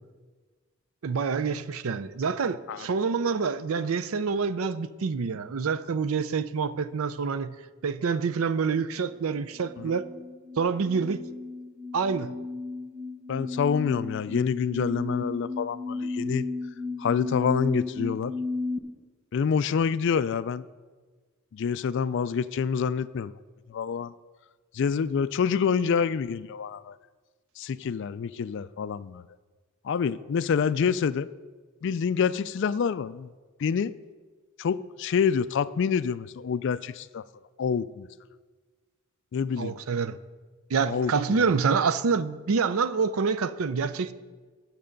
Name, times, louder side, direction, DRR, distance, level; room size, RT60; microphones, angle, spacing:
voice 1, 1.0-7.5 7.8-10.1 10.6-11.2 11.9-12.3 39.6-40.2 40.7-44.1, right 5 dB, 70° right, 0.5 m, -27 dB
sound 1, 9.6-18.8, left 3 dB, 30° right, 0.8 m, -34 dB
voice 2, 13.3-16.5 17.0-18.3 19.3-20.6 21.5-23.3 23.7-24.1 24.7-27.0 27.6-29.3 29.8-31.3 31.8-33.3 33.6-33.9 34.6-37.2 37.6-38.1 39.3-39.8 40.8-41.5, left 6 dB, 55° left, 0.3 m, -27 dB
11.0 x 7.6 x 5.2 m
head